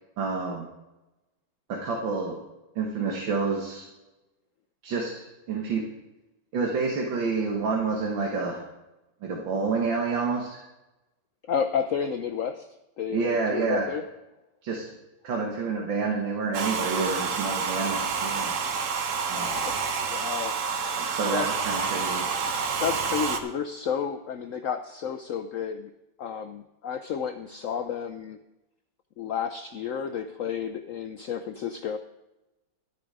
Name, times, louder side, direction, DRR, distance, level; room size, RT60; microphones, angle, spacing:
voice 1, 0.2-0.7 1.7-2.4 2.8-3.8 4.8-5.1 5.5-5.8 6.5-8.6 9.2-10.6 13.1-13.9 14.6-14.9 15.2-18.6 19.3-19.6 21.0-22.3, right 4 dB, 90° right, 0 dB, 2.2 m, -28 dB
voice 2, 11.5-12.7 13.0-14.0 19.3-19.8 20.1-21.5 22.4-22.5 22.8-25.9 26.2-28.4 29.2-32.0, left 7 dB, 75° left, 8 dB, 0.7 m, -31 dB
Domestic sounds home sounds, 16.5-23.4, right 5 dB, 50° right, 1.1 m, -28 dB
12.0 x 9.7 x 4.9 m, 0.98 s
omnidirectional pair, 2.0 m